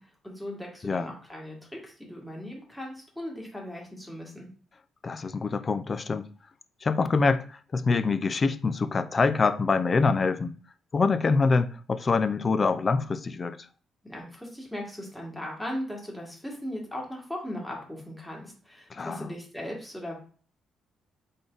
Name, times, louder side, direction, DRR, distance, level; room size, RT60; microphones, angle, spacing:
voice 1, 0.0-4.5 14.0-20.2, left 1 dB, 5° left, 1.8 m, -38 dB
voice 2, 5.0-6.3 6.8-10.5 10.9-13.6 18.9-19.3, left 4 dB, 35° left, 0.4 m, -25 dB
3.8 x 3.4 x 3.9 m
cardioid pair, 90°, 0 cm